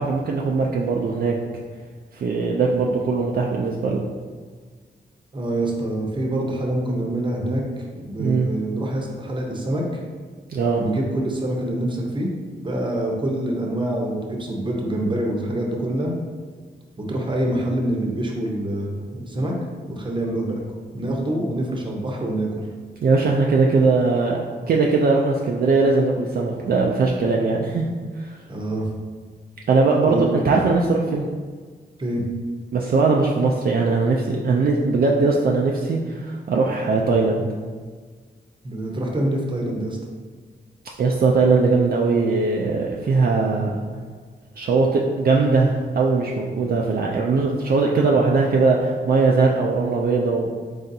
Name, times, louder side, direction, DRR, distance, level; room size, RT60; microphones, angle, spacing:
voice 1, 0.0-1.3 2.1-4.1 8.2-8.5 10.5-10.8 23.0-24.4 24.7-27.9 28.2-28.4 29.7-31.3 32.7-37.5 41.0-43.8 44.6-50.5, right 4 dB, 55° right, -1 dB, 0.4 m, -20 dB
voice 2, 5.3-7.6 8.0-9.8 10.8-12.3 12.6-16.1 17.0-19.5 19.9-20.6 20.9-22.5 28.5-28.9 30.1-30.2 32.0-32.2 38.6-40.0, right 1 dB, 25° right, -1 dB, 0.7 m, -25 dB
3.9 x 3.3 x 2.7 m, 1.5 s
wide cardioid pair, 90°, 18 cm